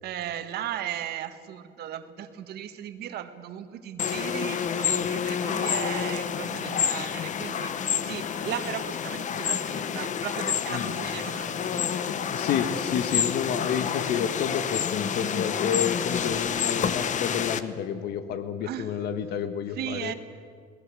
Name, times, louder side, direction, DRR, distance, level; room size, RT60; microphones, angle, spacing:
voice 1, 0.0-7.7 8.0-11.7 18.6-18.9 19.7-20.1, right 10 dB, 70° right, 9 dB, 1.6 m, -36 dB
sound 1, 4.0-17.6, left 7 dB, 45° left, 1.0 m, -29 dB
voice 2, 12.1-20.1, left 8 dB, 70° left, 10 dB, 1.4 m, -30 dB
22.5 x 19.0 x 7.7 m, 2.1 s
cardioid pair, 110°, 17 cm